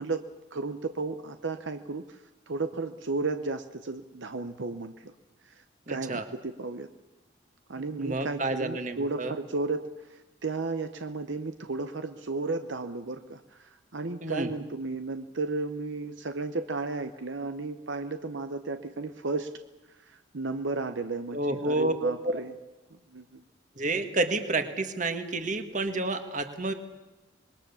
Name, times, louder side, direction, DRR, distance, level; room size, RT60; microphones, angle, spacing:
voice 1, 0.0-5.1 5.4-6.9 7.7-19.5 19.9-22.5 23.1-23.4, right 3 dB, 70° right, 8 dB, 0.9 m, -34 dB
voice 2, 5.9-6.2 7.8-9.3 14.2-14.5 21.3-22.4 23.8-26.7, right 2 dB, 40° right, 7 dB, 1.8 m, -30 dB
26.0 x 21.0 x 7.0 m, 1.1 s
head